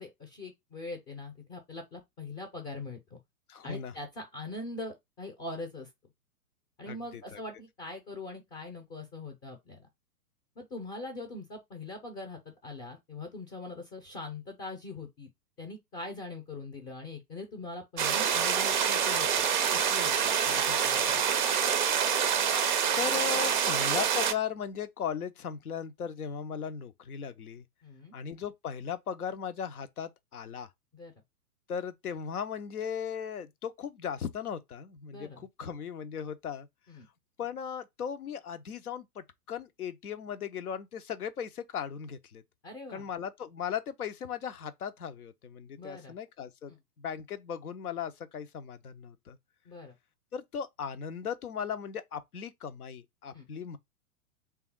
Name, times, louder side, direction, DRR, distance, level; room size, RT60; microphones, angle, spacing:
voice 1, 0.0-3.2 3.6-5.9 6.8-9.8 10.6-15.3 15.6-19.4 19.7-21.3 27.8-28.1 30.9-31.1 35.1-35.4 36.9-37.1 42.6-43.1 45.8-46.1 49.7-49.9 53.3-53.5, left 3 dB, 20° left, 0.6 m, -42 dB
voice 2, 3.5-3.9 6.9-7.4 22.1-22.3 22.9-27.6 28.1-30.7 31.7-36.7 37.4-42.4 42.9-46.7 47.0-49.4 50.3-53.8, left 7 dB, 70° left, 0.7 m, -37 dB
sound 1, 18.0-24.3, right 8 dB, 35° right, 0.4 m, -26 dB
3.4 x 2.4 x 4.4 m
figure-of-eight pair, 110°, 45 cm